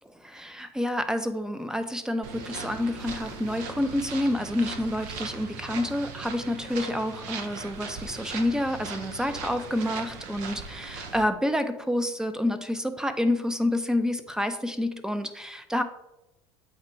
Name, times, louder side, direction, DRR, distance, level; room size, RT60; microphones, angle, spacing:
voice 1, 0.0-15.8, left 1 dB, 5° right, 9 dB, 0.6 m, -28 dB
sound 1, 2.2-11.2, right 5 dB, 70° right, 0.9 m, -39 dB
7.9 x 2.9 x 4.5 m, 0.91 s
hypercardioid pair, 85°, 14 cm